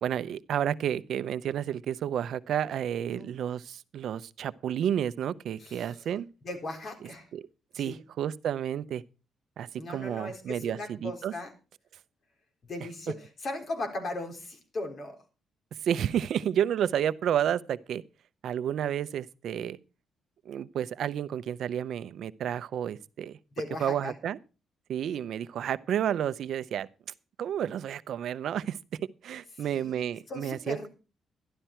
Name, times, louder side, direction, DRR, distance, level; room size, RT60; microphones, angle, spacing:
voice 1, 0.0-6.3 7.3-7.4 7.7-9.0 9.6-11.3 15.8-18.0 18.4-19.8 20.5-23.4 23.8-24.4 24.9-26.9 27.4-28.8 29.2-30.9, right 9 dB, 70° right, 0.6 m, -31 dB
voice 2, 5.6-6.0 6.4-7.3 7.8-7.9 9.8-11.5 12.7-15.2 23.6-24.1 29.7-30.0 30.3-30.9, left 2 dB, 45° left, 4.0 m, -38 dB
12.5 x 12.0 x 4.4 m
cardioid pair, 125°, 0 cm